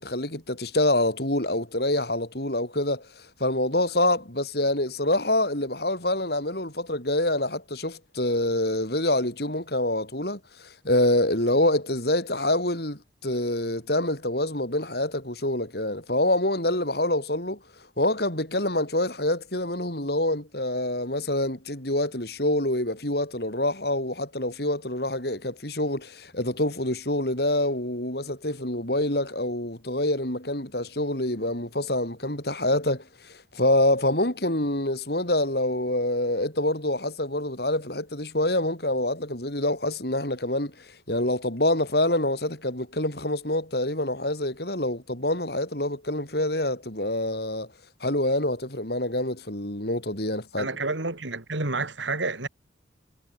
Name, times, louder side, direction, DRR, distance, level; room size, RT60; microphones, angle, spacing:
voice 1, 0.0-17.6 18.0-47.7 48.0-50.7, left 1 dB, 55° left, 5.8 m, -26 dB
voice 2, 50.6-52.5, right 3 dB, 80° right, 2.9 m, -29 dB
head